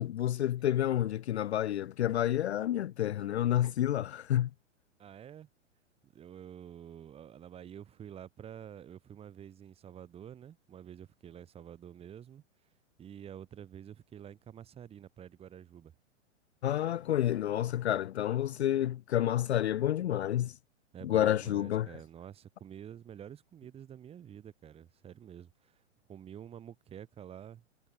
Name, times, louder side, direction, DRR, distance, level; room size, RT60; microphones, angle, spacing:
voice 1, 0.0-4.5 16.6-20.5 21.0-21.9, left 12 dB, 60° left, 0.5 m, -29 dB
voice 2, 5.0-5.5 6.0-12.4 13.0-15.9 20.9-25.8 26.1-27.6, right 9 dB, 15° right, 1.4 m, -49 dB
figure-of-eight pair, 110°, 38 cm